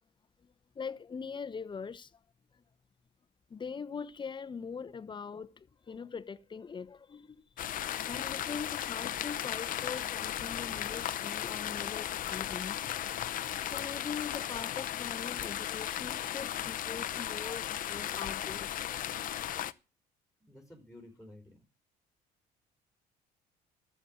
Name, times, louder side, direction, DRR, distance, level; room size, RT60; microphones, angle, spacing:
voice 1, 0.4-2.1 3.5-7.5 8.1-12.9 13.6-18.8, left 6 dB, 30° left, 0.9 m, -42 dB
sound 1, 7.6-19.7, left 11 dB, 55° left, 0.8 m, -36 dB
voice 2, 17.0-17.5 20.5-21.6, left 1 dB, 5° right, 3.8 m, -53 dB
13.0 x 7.4 x 8.5 m
cardioid pair, 110°, 17 cm